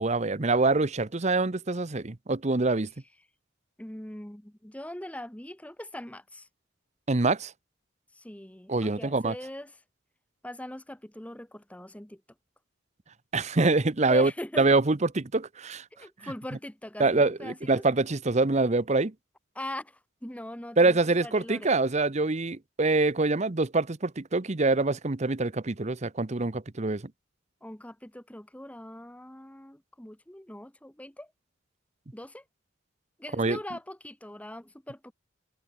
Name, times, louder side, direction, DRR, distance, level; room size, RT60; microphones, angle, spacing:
voice 1, 0.0-2.9 7.1-7.5 8.7-9.3 13.3-14.3 14.6-15.8 16.2-16.3 17.0-19.1 20.8-27.0 33.4-33.6, right 3 dB, 35° right, 0.9 m, -25 dB
voice 2, 3.8-6.5 8.1-9.8 10.4-12.2 14.0-14.7 15.9-17.8 19.5-21.7 27.6-31.3 32.1-32.4 33.2-35.1, left 1 dB, 5° left, 1.0 m, -41 dB
head